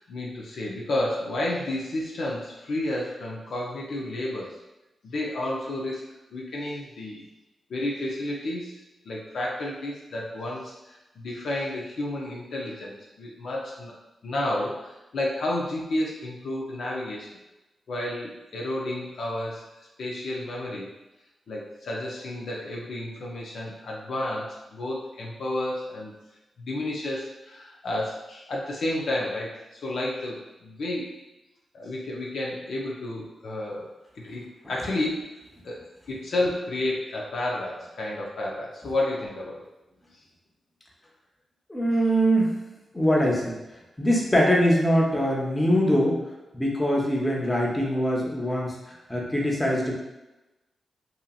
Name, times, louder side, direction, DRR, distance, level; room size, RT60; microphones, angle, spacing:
voice 1, 0.0-4.6 5.0-6.1 6.3-7.3 7.7-13.9 14.2-17.3 17.9-19.7 20.0-20.9 21.5-26.1 26.6-31.1 31.7-35.2 35.6-39.7 41.9-42.0, left 1 dB, 75° left, -3 dB, 0.5 m, -31 dB
voice 2, 41.7-42.5 42.9-43.5 44.0-46.2 46.5-49.9, equal, 20° left, -2 dB, 0.8 m, -23 dB
2.8 x 2.6 x 2.3 m, 1.0 s
supercardioid pair, 40°, 0 cm